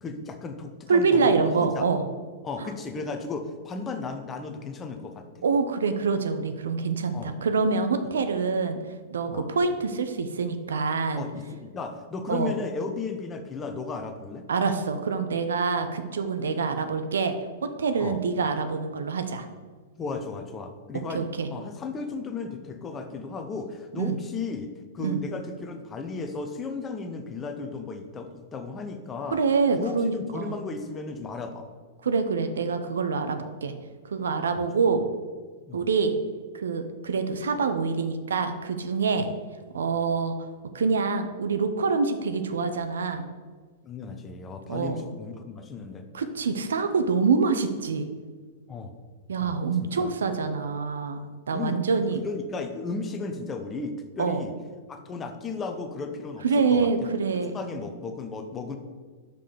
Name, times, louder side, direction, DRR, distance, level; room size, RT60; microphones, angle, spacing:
voice 1, 0.0-1.9 2.4-5.3 7.1-7.4 9.3-9.5 11.2-14.5 18.0-18.2 20.0-29.4 29.7-31.7 34.5-34.6 35.7-35.9 39.2-39.3 43.8-46.1 48.7-48.9 49.4-50.1 51.5-51.8 52.2-54.5 54.9-57.1 57.5-58.8, left 4 dB, 20° left, 6 dB, 0.9 m, -35 dB
voice 2, 0.9-2.1 5.4-8.8 9.1-11.3 12.3-12.5 14.5-17.3 17.6-19.4 21.1-21.5 24.0-24.2 25.0-25.2 29.3-30.6 32.0-33.7 34.1-35.0 35.7-36.1 36.5-39.3 39.7-40.3 40.7-43.3 44.7-45.0 46.1-48.1 49.3-51.2 51.5-52.2 54.2-54.4 56.4-57.5, right 4 dB, 70° right, 8 dB, 0.6 m, -25 dB
5.7 x 5.1 x 6.5 m, 1.5 s
figure-of-eight pair, 100°, 0 cm